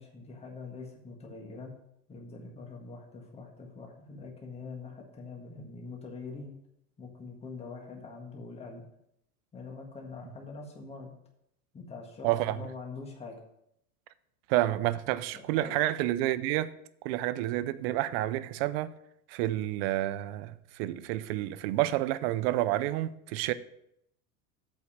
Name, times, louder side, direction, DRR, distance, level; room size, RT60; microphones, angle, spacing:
voice 1, 0.0-1.7 2.1-6.5 7.0-8.9 9.5-11.1 11.7-13.4 15.3-15.8, left 4 dB, 15° left, 1.6 m, -44 dB
voice 2, 12.2-12.7 14.5-16.7 17.0-18.9 19.3-23.5, right 15 dB, 45° right, 0.4 m, -29 dB
8.2 x 5.4 x 6.2 m
supercardioid pair, 160°, 46 cm